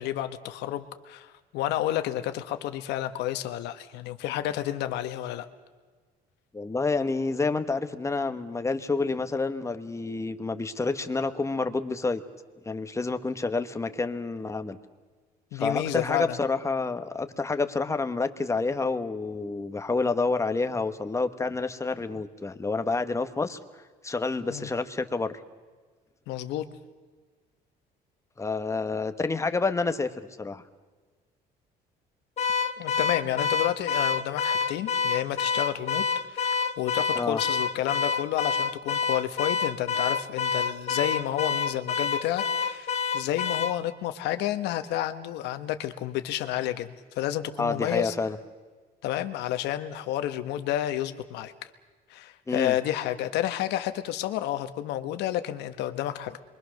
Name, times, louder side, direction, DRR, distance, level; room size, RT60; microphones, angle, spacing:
voice 1, 0.0-5.5 15.5-16.4 24.5-24.7 26.3-26.6 32.8-48.1 49.0-51.5 52.1-56.4, left 12 dB, 85° left, 9 dB, 1.4 m, -30 dB
voice 2, 6.5-12.2 12.6-14.8 15.5-23.6 24.0-25.4 28.4-30.6 37.1-37.4 47.6-48.4 52.5-52.8, left 3 dB, 15° left, 8 dB, 1.4 m, -28 dB
Car / Alarm, 32.4-43.8, left 5 dB, 40° left, 1.0 m, -28 dB
27.0 x 23.0 x 6.6 m, 1.4 s
cardioid pair, 110°, 17 cm